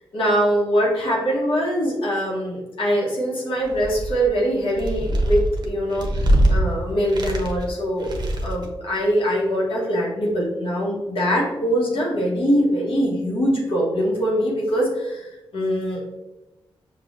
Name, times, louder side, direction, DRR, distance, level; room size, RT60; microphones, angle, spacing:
voice 1, 0.1-6.2 6.5-16.2, equal, 70° left, -4 dB, 1.0 m, -23 dB
sound 1, 3.6-4.3 4.7-6.6 7.0-7.7 8.0-8.7, right 1 dB, 50° right, 0.6 m, -22 dB
5.2 x 2.3 x 2.5 m, 1.0 s
cardioid pair, 55°, 10 cm